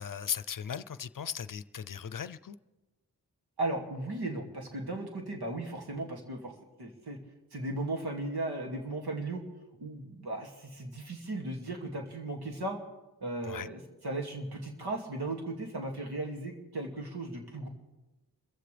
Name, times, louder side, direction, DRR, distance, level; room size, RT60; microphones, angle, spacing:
voice 1, 0.0-2.6 13.4-13.7, left 8 dB, 55° left, 0.6 m, -37 dB
voice 2, 3.6-6.5 6.8-7.2 7.5-9.4 9.8-12.8 13.2-17.7, right 2 dB, 85° right, 2.5 m, -36 dB
26.5 x 15.0 x 3.4 m
cardioid pair, 50°, 38 cm